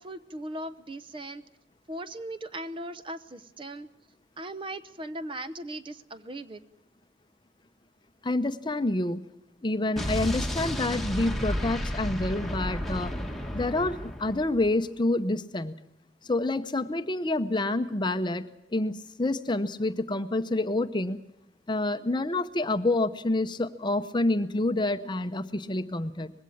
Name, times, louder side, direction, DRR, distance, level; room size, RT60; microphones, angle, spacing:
voice 1, 0.0-1.4 1.9-3.9 4.4-6.6, right 1 dB, 30° right, 12 dB, 0.8 m, -38 dB
voice 2, 8.2-9.3 9.6-13.1 13.5-15.7 16.2-21.2 21.7-26.3, left 2 dB, 25° left, 11 dB, 0.7 m, -28 dB
Explosion, 10.0-14.7, equal, ahead, 1.5 m, -32 dB
20.5 x 16.0 x 8.7 m, 0.83 s
head